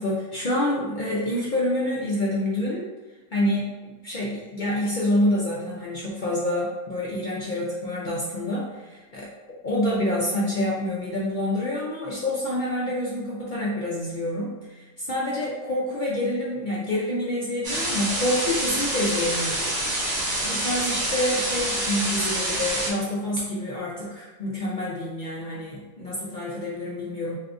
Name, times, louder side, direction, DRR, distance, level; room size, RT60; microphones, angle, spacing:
voice 1, 0.0-2.9 3.3-3.8 4.0-9.3 9.6-19.7 20.1-27.4, left 1 dB, 80° left, -6 dB, 0.4 m, -27 dB
sound 1, 17.6-22.9, right 1 dB, 45° right, 1.3 m, -27 dB
2.7 x 2.4 x 3.5 m, 1.2 s
omnidirectional pair, 1.5 m